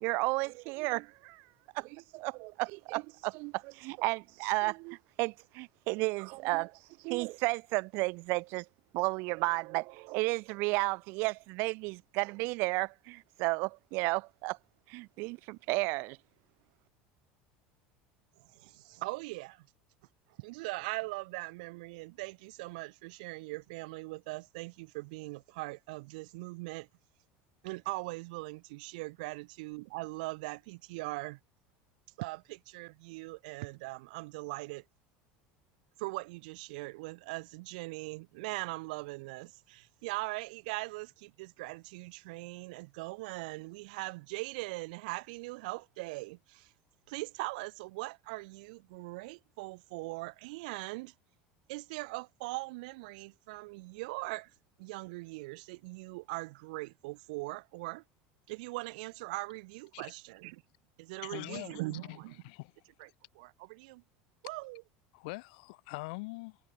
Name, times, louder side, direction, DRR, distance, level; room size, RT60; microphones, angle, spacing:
voice 1, 0.0-1.4 1.7-8.7 8.9-14.6 14.9-16.2, right 26 dB, 55° right, 0.4 m, -33 dB
voice 2, 18.4-19.7 20.4-26.9 27.6-31.4 32.2-34.8 36.0-46.7 47.1-51.1 51.7-54.5 54.8-58.0 58.5-60.6 61.0-62.4 63.0-63.1 63.3-64.0 64.4-64.8, right 24 dB, 80° right, 1.3 m, -40 dB
voice 3, 61.2-62.2 62.4-62.7 65.1-66.6, left 27 dB, 75° left, 2.1 m, -43 dB
cardioid pair, 155°, 4 cm